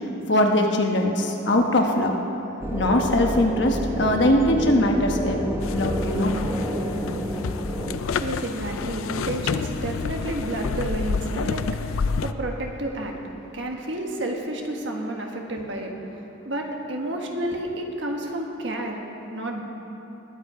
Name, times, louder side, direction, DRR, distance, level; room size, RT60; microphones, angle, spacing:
voice 1, 0.3-2.1 2.7-5.4 5.7-6.3, left 1 dB, 60° left, 2 dB, 1.2 m, -21 dB
sound 1, 2.6-8.0, equal, 10° right, 0.9 m, -29 dB
sound 2, 5.6-12.3, left 5 dB, 90° left, 0.5 m, -29 dB
voice 2, 8.1-19.0 19.3-19.6, right 1 dB, 60° right, 2 dB, 1.4 m, -31 dB
20.5 x 8.2 x 5.0 m, 2.9 s
head